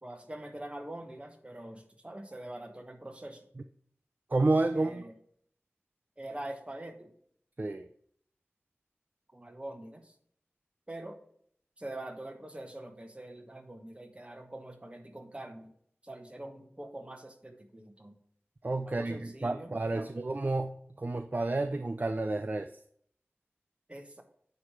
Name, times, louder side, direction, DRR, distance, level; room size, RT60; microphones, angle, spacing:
voice 1, 0.0-3.4 4.7-5.1 6.2-7.1 9.3-10.1 10.9-11.2 11.8-15.7 16.0-18.2 18.9-20.1 23.9-24.2, right 1 dB, 25° right, 4 dB, 1.2 m, -44 dB
voice 2, 4.3-5.0 7.6-7.9 18.6-22.7, right 2 dB, 40° right, 7 dB, 0.4 m, -30 dB
9.3 x 3.2 x 6.6 m, 0.65 s
wide cardioid pair, 60°, 4 cm